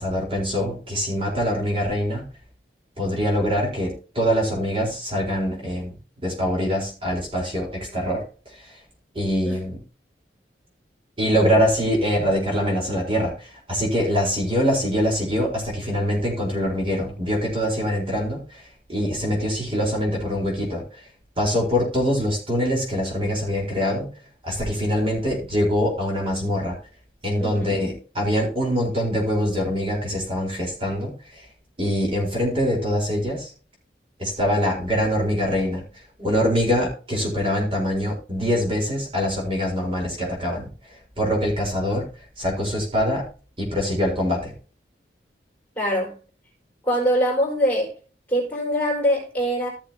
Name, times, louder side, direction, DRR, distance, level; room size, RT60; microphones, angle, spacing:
voice 1, 0.0-2.2 3.0-8.2 8.5-8.8 9.1-9.8 11.2-21.0 21.4-24.1 24.4-26.8 27.2-31.5 31.8-33.5 34.2-35.8 36.2-40.7 41.2-42.1 42.4-43.2 43.6-44.5, equal, 30° right, 4.3 m, -24 dB
voice 2, 27.4-27.7 45.8-46.1 46.8-47.9 48.3-49.7, equal, 10° left, 4.5 m, -23 dB
15.5 x 7.0 x 2.9 m
head